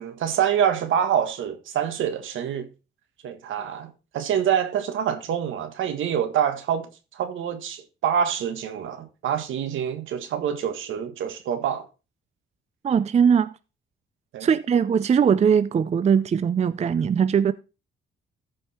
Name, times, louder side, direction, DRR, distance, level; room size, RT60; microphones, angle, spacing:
voice 1, 0.0-2.7 3.2-6.9 7.1-11.9 14.3-14.5, right 9 dB, 80° right, 1.7 m, -26 dB
voice 2, 12.8-13.6 14.4-17.5, right 7 dB, 35° right, 0.5 m, -20 dB
14.0 x 5.3 x 4.3 m
cardioid pair, 90°, 20 cm